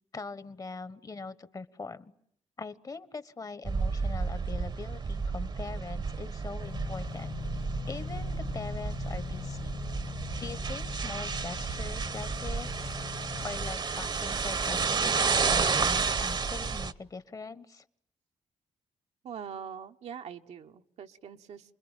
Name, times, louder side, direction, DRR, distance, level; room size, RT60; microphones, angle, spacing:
voice 1, 0.1-2.1 2.6-7.3 7.9-9.8 10.4-12.9 13.4-17.8, left 4 dB, 30° left, 15 dB, 1.2 m, -42 dB
sound 1, 3.6-16.9, right 5 dB, 40° right, 1.1 m, -31 dB
sound 2, 6.6-13.7, left 6 dB, 50° left, 1.6 m, -41 dB
voice 2, 19.2-21.7, right 7 dB, 70° right, 5 dB, 1.2 m, -43 dB
28.5 x 21.5 x 9.1 m, 0.68 s
cardioid pair, 90°, 11 cm